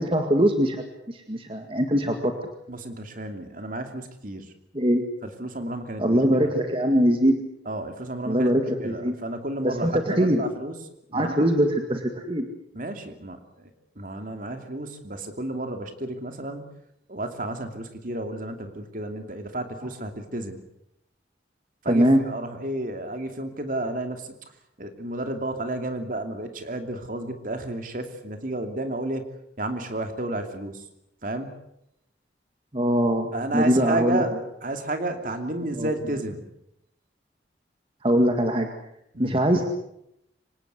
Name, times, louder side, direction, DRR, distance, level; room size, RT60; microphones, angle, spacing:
voice 1, 0.0-2.3 4.7-5.0 6.0-7.4 8.3-9.2 9.6-10.4 11.1-12.5 21.9-22.2 32.7-34.2 35.7-35.9 38.0-38.7 39.2-39.6, equal, 30° right, 5 dB, 2.0 m, -22 dB
voice 2, 2.7-4.5 5.2-6.2 6.4-6.5 7.7-8.5 8.8-10.8 11.1-11.4 12.7-13.7 14.0-16.6 17.1-20.6 21.8-24.4 24.8-29.3 29.6-30.8 31.2-31.6 33.3-34.3 34.6-36.5 39.1-39.4, right 1 dB, 50° right, 6 dB, 2.8 m, -32 dB
25.5 x 19.0 x 8.3 m, 0.80 s
head